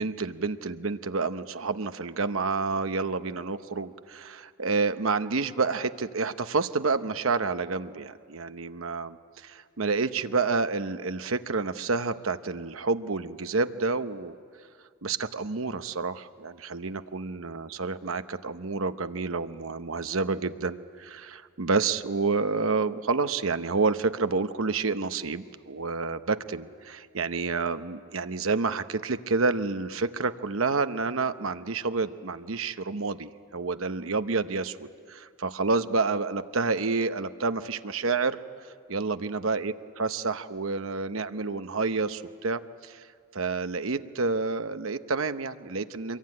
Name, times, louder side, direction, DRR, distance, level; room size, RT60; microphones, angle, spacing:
voice 1, 0.0-14.4 15.0-38.4 38.9-43.0 43.3-46.2, right 4 dB, 85° right, 10 dB, 1.0 m, -29 dB
26.0 x 23.0 x 9.7 m, 2.2 s
head